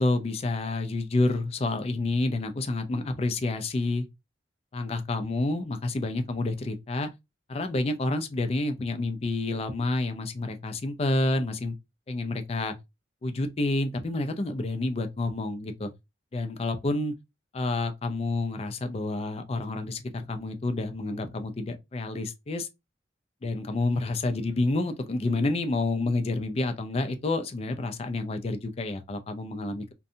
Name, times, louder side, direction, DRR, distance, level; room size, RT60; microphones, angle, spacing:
voice 1, 0.0-4.1 4.7-7.1 7.5-11.7 12.1-12.7 13.2-15.9 16.3-17.1 17.5-22.7 23.4-29.9, left 2 dB, 35° left, 0.4 m, -29 dB
2.6 x 2.1 x 2.6 m
head